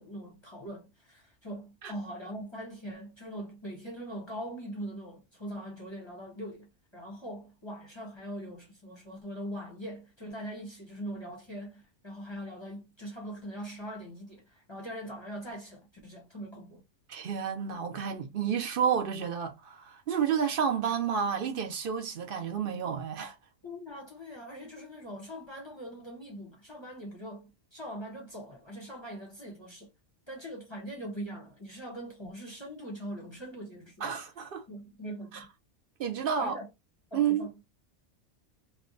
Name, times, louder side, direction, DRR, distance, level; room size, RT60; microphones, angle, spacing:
voice 1, 0.0-16.8 23.6-29.9 30.3-34.1 34.7-35.4 36.4-36.7 37.1-37.5, equal, 25° left, 0.7 m, -42 dB
voice 2, 17.1-23.3 34.0-34.7 35.3-35.4 36.0-36.6 37.1-37.5, right 7 dB, 55° right, 0.8 m, -30 dB
2.8 x 2.2 x 3.8 m
omnidirectional pair, 1.2 m